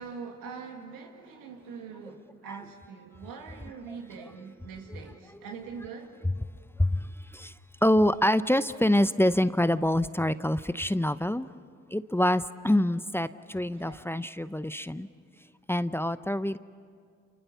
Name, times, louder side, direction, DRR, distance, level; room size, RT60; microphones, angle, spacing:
voice 1, 0.0-6.2 13.7-14.0, right 5 dB, 90° right, 3 dB, 2.5 m, -43 dB
voice 2, 6.8-7.5 7.8-11.5 11.9-15.1 15.7-16.6, left 1 dB, 5° left, 14 dB, 0.7 m, -26 dB
29.0 x 28.0 x 7.0 m, 2.2 s
supercardioid pair, 45°, 33 cm